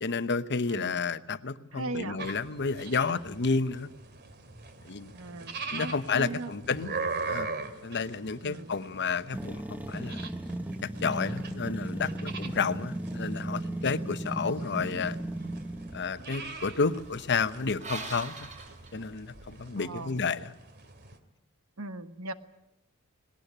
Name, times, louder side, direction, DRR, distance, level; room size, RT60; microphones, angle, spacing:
voice 1, 0.0-3.9 4.8-5.1 5.7-7.5 7.8-10.3 10.8-15.2 15.9-18.5 18.9-20.5, left 4 dB, 55° left, 12 dB, 1.0 m, -31 dB
voice 2, 0.7-1.0 1.7-2.2 5.1-6.5 8.4-8.7 19.8-20.2 21.8-22.3, right 2 dB, 70° right, 10 dB, 1.4 m, -38 dB
sound 1, 2.2-21.2, right 4 dB, 50° right, 2.6 m, -42 dB
sound 2, 9.3-16.1, right 1 dB, 10° right, 0.8 m, -36 dB
sound 3, 15.2-19.6, right 3 dB, 35° right, 6.4 m, -45 dB
19.5 x 19.0 x 10.0 m, 0.88 s
head